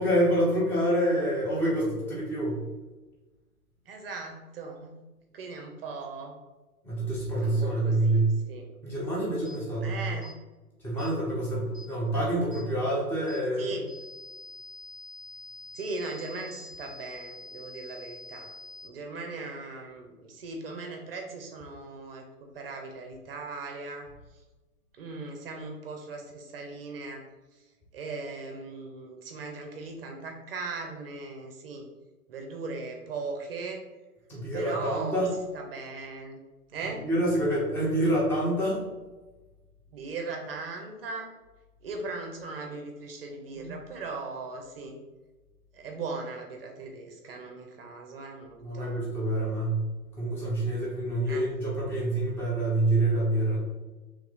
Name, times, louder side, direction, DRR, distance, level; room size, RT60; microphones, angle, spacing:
voice 1, 0.0-2.6 6.8-8.3 8.8-10.0 10.8-13.7 34.3-35.3 37.0-38.8 43.5-43.8 48.6-49.8 50.2-53.6, right 1 dB, 5° left, -6 dB, 0.6 m, -27 dB
voice 2, 3.9-5.0 5.3-6.3 7.4-8.2 8.5-8.7 9.8-10.3 13.6-13.9 15.7-18.5 18.8-24.1 25.0-27.2 27.9-31.9 32.3-33.8 34.5-35.3 35.5-36.4 36.7-37.1 39.9-41.3 41.8-45.0 45.7-49.0 51.3-51.5, right 3 dB, 40° right, 3 dB, 0.6 m, -38 dB
sound 1, 9.4-9.6 10.2-10.4 11.0-11.1 11.7-11.9 12.5-12.7 13.3-13.4 13.9-18.9, left 2 dB, 55° left, 1.3 m, -46 dB
3.1 x 3.0 x 3.8 m, 1.2 s
hypercardioid pair, 125°, 45 cm